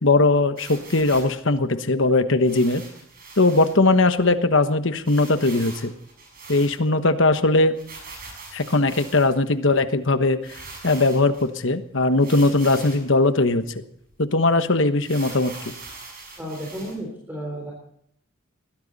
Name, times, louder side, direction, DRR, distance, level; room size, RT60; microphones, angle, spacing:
voice 1, 0.0-2.8 3.4-5.9 6.5-7.7 8.5-10.5 10.8-13.6 14.2-15.5, left 2 dB, 60° left, 10 dB, 1.2 m, -19 dB
sound 1, 0.6-1.4 2.4-3.7 4.2-4.3 4.5-4.6 5.0-7.1 7.7-9.4 10.1-10.2 10.4-11.5 12.2-13.1 13.6-13.7 14.1-14.2 15.0-16.9, right 3 dB, 45° right, 6.7 m, -42 dB
voice 2, 16.4-17.7, right 1 dB, 10° right, -2 dB, 3.7 m, -33 dB
21.5 x 16.0 x 4.1 m, 0.71 s
head